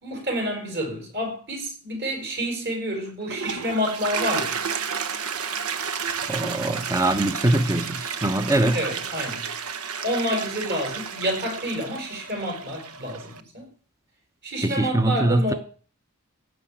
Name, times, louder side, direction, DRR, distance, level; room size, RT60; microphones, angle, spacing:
voice 1, 0.0-4.6 8.7-9.4 10.0-13.7 14.4-15.6, equal, 50° right, 5.2 m, -28 dB
Toilet flush, 3.1-13.4, right 6 dB, 85° right, 1.0 m, -31 dB
voice 2, 6.3-8.8 14.6-15.5, right 1 dB, 15° right, 0.7 m, -22 dB
15.5 x 5.8 x 8.6 m
head